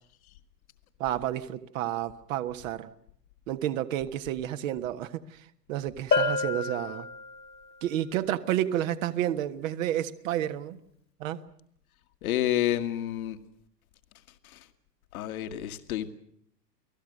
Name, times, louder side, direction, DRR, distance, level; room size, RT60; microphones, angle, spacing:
voice 1, 1.0-2.9 3.5-7.1 7.8-10.8 11.2-11.4, right 12 dB, 50° right, 1.6 m, -30 dB
Bell, 6.1-7.7, left 3 dB, 85° left, 3.0 m, -28 dB
voice 2, 12.2-13.4 14.4-14.7 15.1-16.1, left 12 dB, 60° left, 1.8 m, -29 dB
29.5 x 19.5 x 6.5 m
figure-of-eight pair, 100°, 49 cm